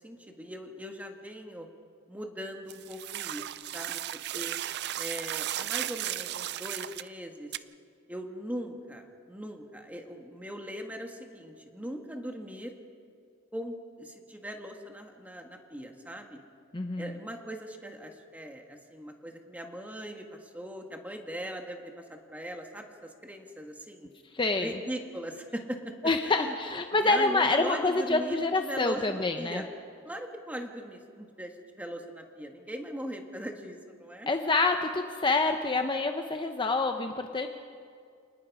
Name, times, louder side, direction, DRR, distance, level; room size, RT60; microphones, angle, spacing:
voice 1, 0.0-1.7 2.1-4.6 4.9-7.5 8.1-12.7 13.5-16.4 17.0-24.1 24.6-25.8 26.2-26.5 27.0-29.7 30.0-34.3, equal, 10° right, 3 dB, 1.7 m, -40 dB
sound 1, 2.7-7.1 7.5-7.6, right 13 dB, 55° right, 0.4 m, -35 dB
voice 2, 16.7-17.2 24.3-24.7 26.0-29.6 34.3-37.5, left 3 dB, 25° left, 5 dB, 0.8 m, -27 dB
28.0 x 19.5 x 4.9 m, 2.3 s
head